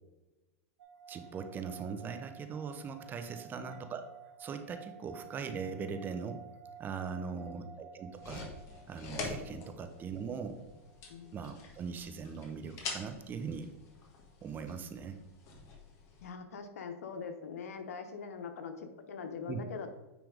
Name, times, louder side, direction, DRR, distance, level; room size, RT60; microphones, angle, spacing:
sound 1, 0.8-12.1, right 7 dB, 80° right, 0.9 m, -54 dB
voice 1, 1.1-4.0 4.4-6.4 6.8-8.5 8.9-10.6 11.3-13.7 14.4-15.2 19.5-19.6, right 5 dB, 25° right, 8 dB, 0.8 m, -40 dB
voice 2, 7.3-7.7 11.1-11.4 16.2-20.0, left 5 dB, 80° left, 7 dB, 1.1 m, -43 dB
sound 2, 8.1-16.3, left 3 dB, 35° left, 1.6 m, -45 dB
9.3 x 3.4 x 5.0 m, 1.1 s
hypercardioid pair, 125°, 8 cm